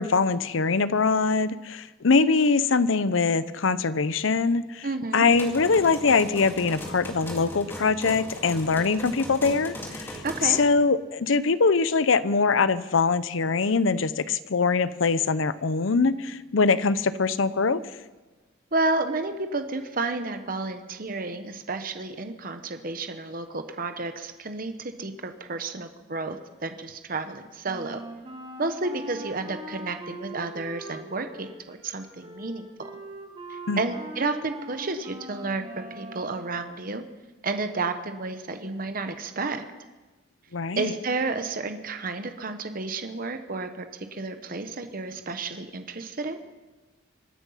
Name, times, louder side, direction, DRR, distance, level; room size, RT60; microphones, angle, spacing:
voice 1, 0.0-4.9 5.1-10.1 10.4-17.8 33.7-33.8 40.5-40.9, left 4 dB, 85° left, 15 dB, 0.7 m, -23 dB
voice 2, 4.8-5.3 10.2-10.6 18.7-28.0 28.6-32.9 33.5-37.0 37.4-39.6 40.8-43.9 44.1-46.4, right 3 dB, 45° right, 7 dB, 1.1 m, -31 dB
sound 1, 5.3-10.7, equal, 10° left, 2.3 m, -38 dB
Wind instrument woodwind instrument, 27.6-36.5, right 1 dB, 30° right, 2.1 m, -41 dB
25.5 x 9.8 x 5.7 m, 1.2 s
head